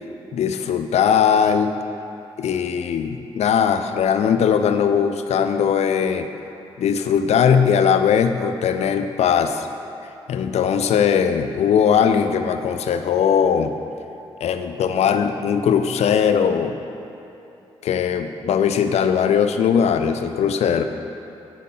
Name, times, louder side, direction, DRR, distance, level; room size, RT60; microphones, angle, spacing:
voice 1, 0.3-1.8 2.4-6.3 6.8-9.7 10.3-13.7 14.4-16.7 17.8-20.8, left 7 dB, 70° left, 8 dB, 0.5 m, -19 dB
8.4 x 5.4 x 3.8 m, 2.9 s
supercardioid pair, 50°, 12 cm